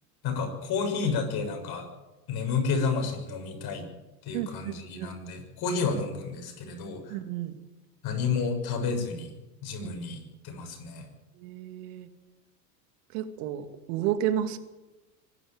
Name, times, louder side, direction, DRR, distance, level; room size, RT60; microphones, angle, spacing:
voice 1, 0.2-1.9 2.3-3.9 4.2-7.2 8.0-9.3 9.6-11.1, left 5 dB, 50° left, 4 dB, 6.8 m, -30 dB
voice 2, 4.3-5.1 7.1-7.6 9.8-9.9 11.4-12.1 13.1-14.6, right 11 dB, 65° right, 8 dB, 2.5 m, -32 dB
24.5 x 12.0 x 9.0 m, 1.1 s
hypercardioid pair, 90°, 48 cm